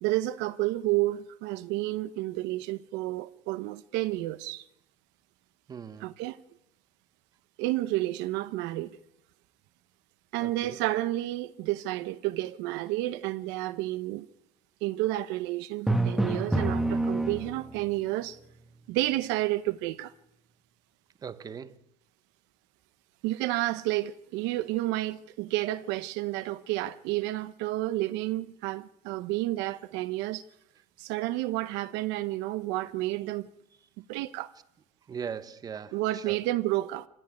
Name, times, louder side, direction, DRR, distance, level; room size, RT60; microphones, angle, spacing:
voice 1, 0.0-4.6 6.0-6.4 7.6-9.0 10.3-14.3 14.8-18.4 18.9-20.1 23.2-30.4 31.0-33.5 34.0-34.5 35.9-37.1, right 17 dB, 65° right, 0.9 m, -30 dB
voice 2, 5.7-6.0 10.4-10.8 21.2-21.7 35.1-35.9 36.3-36.4, right 7 dB, 20° right, 0.8 m, -39 dB
Drum, 15.9-17.9, right 2 dB, ahead, 1.1 m, -27 dB
25.5 x 16.5 x 9.6 m
cardioid pair, 175°, 19 cm